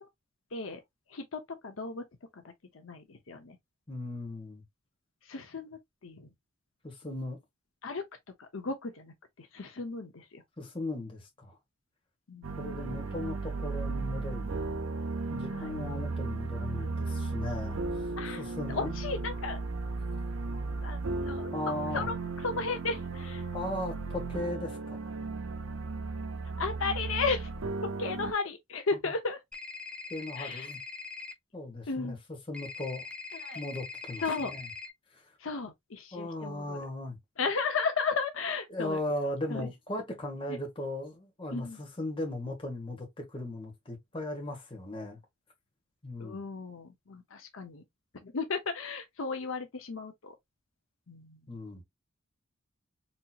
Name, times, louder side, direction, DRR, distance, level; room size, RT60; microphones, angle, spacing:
voice 1, 1.1-2.0 2.7-3.6 5.3-6.3 7.8-8.0 8.4-10.4 12.3-12.6 15.5-15.7 18.2-19.6 20.8-21.5 21.9-22.2 22.4-23.4 26.6-27.5 28.0-29.4 30.4-30.7 31.9-32.2 33.3-33.6 34.2-34.5 35.4-36.8 37.4-39.0 39.5-39.7 40.5-40.6 41.5-41.8 46.2-47.8 48.2-50.3 51.1-51.4, left 4 dB, 70° left, 0.8 m, -34 dB
voice 2, 3.9-4.6 6.8-7.4 10.6-11.6 12.6-14.7 15.3-18.9 21.5-22.1 23.5-25.0 29.0-29.1 30.1-30.8 31.5-33.1 33.5-34.7 35.1-35.2 36.1-37.2 38.7-45.2 46.0-46.4 51.5-51.8, left 1 dB, 25° left, 1.3 m, -37 dB
sound 1, 12.4-28.3, right 3 dB, 75° right, 0.6 m, -35 dB
sound 2, 29.5-31.3 32.5-34.9, left 4 dB, 5° left, 0.5 m, -42 dB
4.3 x 2.8 x 2.4 m
head